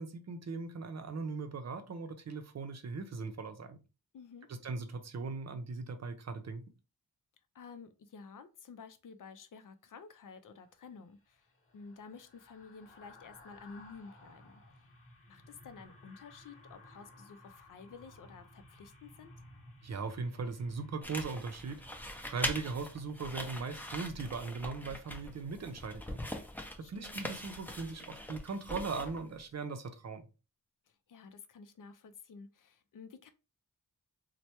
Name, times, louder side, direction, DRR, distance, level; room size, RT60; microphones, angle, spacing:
voice 1, 0.0-3.8 4.6-6.6 19.8-22.0 22.2-26.2 26.8-30.3, right 4 dB, 50° right, 0.6 m, -39 dB
voice 2, 4.1-4.5 7.5-11.5 11.7-14.8 15.3-19.3 26.8-27.2 30.9-33.3, left 5 dB, 65° left, 0.5 m, -52 dB
sound 1, 10.6-23.9 24.2-24.4, left 1 dB, 40° left, 1.0 m, -58 dB
sound 2, 21.0-29.4, equal, 5° left, 0.6 m, -42 dB
3.1 x 2.2 x 2.8 m
cardioid pair, 75°, 35 cm